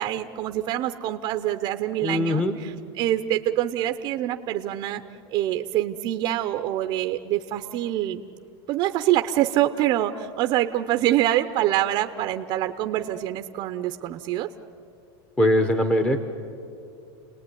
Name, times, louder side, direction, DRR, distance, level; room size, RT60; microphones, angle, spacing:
voice 1, 0.0-2.7 3.0-5.0 5.3-8.2 8.7-14.5, right 13 dB, 35° right, 7 dB, 0.7 m, -25 dB
voice 2, 2.0-2.6 15.4-16.2, left 1 dB, 10° left, 8 dB, 0.9 m, -21 dB
30.0 x 19.0 x 9.9 m, 2.6 s
supercardioid pair, 170°, 13 cm